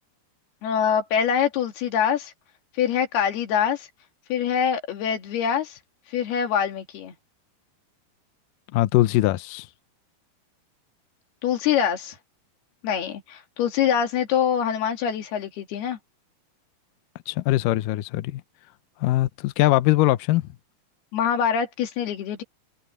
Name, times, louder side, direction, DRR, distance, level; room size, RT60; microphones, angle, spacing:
voice 1, 0.6-2.3 2.8-3.9 4.3-5.8 6.1-7.1 11.4-12.2 12.8-16.0 21.1-22.4, left 8 dB, 65° left, 4.1 m, -24 dB
voice 2, 8.7-9.7 17.3-18.4 19.0-20.5, left 16 dB, 90° left, 1.9 m, -21 dB
omnidirectional pair, 5.0 m